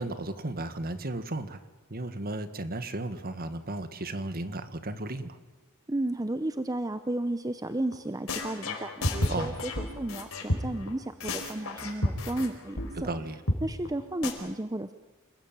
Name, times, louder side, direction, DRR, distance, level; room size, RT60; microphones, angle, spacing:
voice 1, 0.0-1.6 1.9-5.4 9.3-9.6 13.0-13.4, right 2 dB, 45° right, 11 dB, 1.7 m, -34 dB
voice 2, 5.9-12.9 13.6-14.9, right 1 dB, 15° right, 10 dB, 0.8 m, -33 dB
sound 1, 7.9-8.0 8.3-10.9 11.2-12.5 12.8-12.9 13.1-13.2 13.5-13.6 13.9-14.0 14.2-14.3, left 1 dB, 70° left, 4.8 m, -30 dB
28.5 x 19.5 x 9.1 m, 1.2 s
head